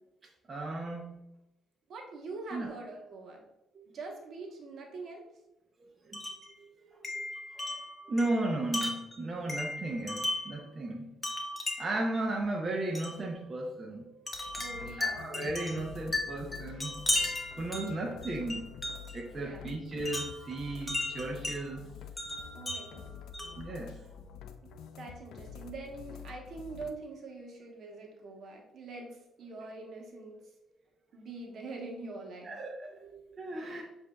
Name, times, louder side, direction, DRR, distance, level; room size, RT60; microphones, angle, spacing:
voice 1, 0.5-1.2 2.5-2.7 3.7-3.9 5.8-6.2 6.5-7.3 7.5-7.8 8.1-11.1 11.8-14.6 15.0-18.7 19.1-21.9 23.4-24.1 32.4-33.8, right 2 dB, 35° right, -1 dB, 0.7 m, -36 dB
voice 2, 1.9-3.4 3.9-5.2 14.5-15.3 19.2-19.7 22.5-23.0 25.0-30.4 31.1-32.5, right 3 dB, 65° right, 1 dB, 1.0 m, -44 dB
Wind chime, 6.1-6.5 7.0-10.6 11.2-12.1 12.9-13.2 14.3-19.2 20.1-21.6 22.2-23.7, left 1 dB, 15° left, 0.8 m, -36 dB
sound 1, 14.3-27.0, left 7 dB, 85° left, 0.3 m, -48 dB
7.3 x 2.6 x 2.3 m, 0.92 s
cardioid pair, 90°, 0 cm